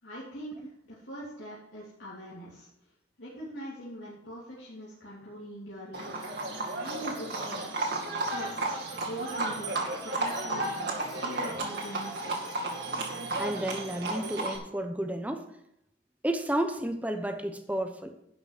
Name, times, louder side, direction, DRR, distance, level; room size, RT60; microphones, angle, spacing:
voice 1, 0.0-2.7 3.2-6.3 6.8-7.8 8.1-8.6 9.1-9.8 10.0-10.9 11.2-12.6, equal, 70° left, -9 dB, 3.3 m, -42 dB
Livestock farm animals working animals, 5.9-14.6, right 2 dB, 60° right, 2.2 m, -33 dB
voice 2, 13.4-15.4 16.2-18.1, right 1 dB, 5° right, 7 dB, 0.9 m, -31 dB
11.5 x 6.0 x 5.9 m, 0.80 s
head